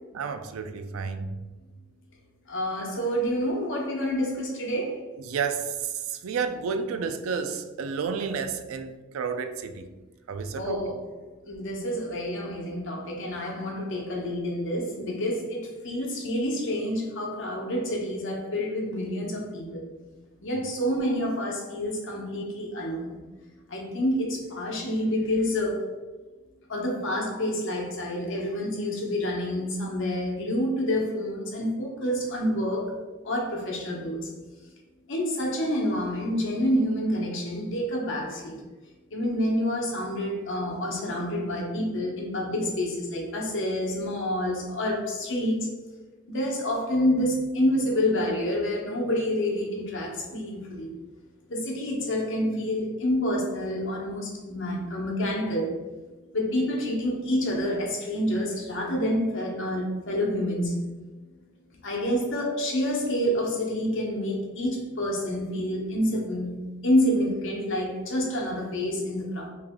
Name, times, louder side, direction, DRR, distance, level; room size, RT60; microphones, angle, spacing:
voice 1, 0.1-1.4 5.2-9.9 10.3-10.9, right 5 dB, 80° right, 8 dB, 0.4 m, -31 dB
voice 2, 2.5-5.0 10.5-11.0 11.4-19.8 20.4-23.2 23.7-25.9 26.7-32.9 33.2-34.3 35.1-38.6 39.1-45.7 46.3-50.9 51.5-55.8 56.3-60.8 61.8-66.5 66.8-69.5, left 1 dB, 65° left, -1 dB, 1.0 m, -28 dB
3.2 x 2.9 x 3.6 m, 1.2 s
head